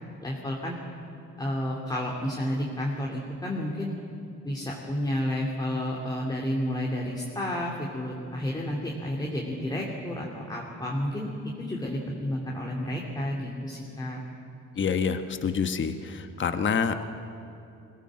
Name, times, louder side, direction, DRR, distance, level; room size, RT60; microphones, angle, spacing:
voice 1, 0.2-0.8 1.4-3.9 4.4-11.3 11.6-14.2, left 1 dB, 15° left, -2 dB, 2.8 m, -31 dB
voice 2, 14.8-17.1, left 6 dB, 40° left, 8 dB, 1.2 m, -27 dB
21.5 x 17.5 x 7.7 m, 2.7 s
cardioid pair, 90°, 30 cm